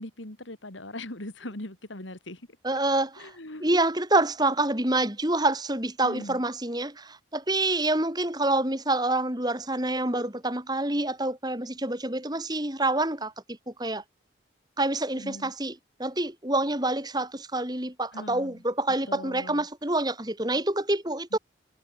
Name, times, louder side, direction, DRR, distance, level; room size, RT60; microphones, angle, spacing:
voice 1, 0.0-2.4 3.2-3.7 6.0-6.4 15.2-15.5 18.1-18.6 19.1-19.7 21.3-21.4, left 1 dB, 85° left, 3.7 m, -40 dB
voice 2, 2.6-3.3 3.6-14.0 14.8-21.4, right 2 dB, 20° right, 4.9 m, -27 dB
head